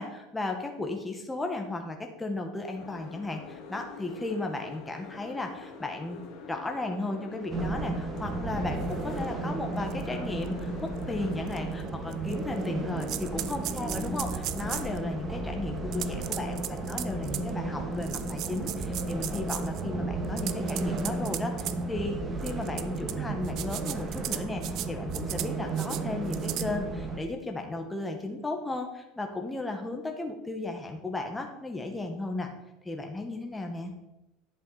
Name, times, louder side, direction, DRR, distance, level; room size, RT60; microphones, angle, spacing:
voice 1, 0.0-6.2 6.5-32.5 32.8-33.9, left 2 dB, 10° left, 3 dB, 1.7 m, -35 dB
Boat Water vehicle, 2.7-11.8, left 4 dB, 60° left, 2.2 m, -45 dB
sound 1, 7.5-27.2, right 2 dB, 25° right, 1.7 m, -34 dB
sound 2, 9.2-9.3 9.9-10.0 10.5-10.6 11.5-11.6 12.1-12.7 13.0-15.0 15.9-17.5 18.0-19.8 20.2-21.7 22.4-23.1 23.4-24.9 25.1-25.5 25.8-26.0 26.3-26.7, right 13 dB, 50° right, 0.6 m, -36 dB
11.0 x 7.9 x 4.3 m, 0.94 s
supercardioid pair, 125°, 0 cm